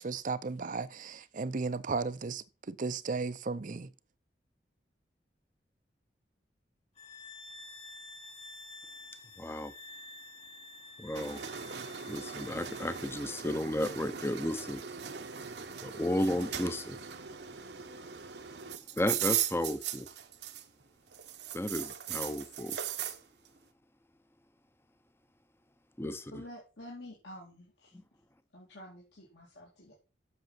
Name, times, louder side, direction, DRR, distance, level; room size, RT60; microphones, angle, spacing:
voice 1, 0.0-3.9, right 4 dB, 45° right, 0.6 m, -35 dB
sound 1, 6.9-13.4, left 2 dB, 35° left, 1.8 m, -50 dB
voice 2, 9.4-9.7 11.0-11.4 12.1-14.8 15.8-17.0 19.0-20.1 21.5-22.8 26.0-26.3, left 1 dB, 15° left, 0.6 m, -33 dB
sound 2, 11.1-20.8 21.1-23.2, right 9 dB, 65° right, 1.0 m, -38 dB
voice 3, 26.1-27.9 28.5-29.9, left 1 dB, 70° left, 2.7 m, -49 dB
7.9 x 6.7 x 5.8 m
head